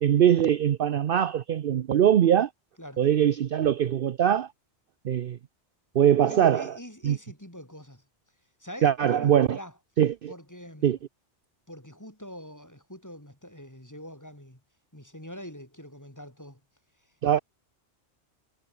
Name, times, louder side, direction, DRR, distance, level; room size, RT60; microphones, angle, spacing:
voice 1, 0.0-2.5 3.0-4.5 5.0-5.4 5.9-6.7 7.0-7.2 8.8-9.6 10.0-10.3 10.8-11.0 17.2-17.4, right 10 dB, 60° right, 0.8 m, -22 dB
voice 2, 6.2-8.0 8.6-9.7 10.3-11.0 11.7-14.6 14.9-16.6, equal, 15° left, 5.5 m, -43 dB
omnidirectional pair, 1.2 m